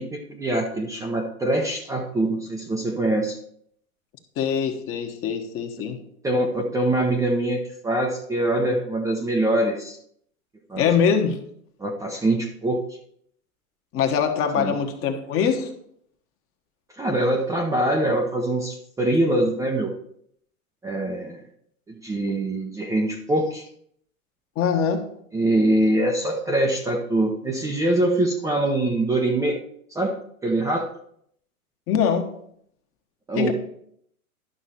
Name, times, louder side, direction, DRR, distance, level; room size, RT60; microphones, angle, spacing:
voice 1, 0.0-3.4 6.2-10.0 10.7-10.8 11.8-12.8 14.6-14.8 16.9-19.9 20.8-21.4 22.0-23.7 25.3-29.6 29.9-30.1 30.4-30.9 33.3-33.5, right 1 dB, 5° right, 0 dB, 0.7 m, -23 dB
voice 2, 4.4-6.0 10.8-11.4 13.9-15.7 24.6-25.1 31.9-32.3 33.4-33.5, left 7 dB, 30° left, 6 dB, 1.3 m, -23 dB
11.5 x 6.0 x 4.3 m, 0.68 s
hypercardioid pair, 115°, 44 cm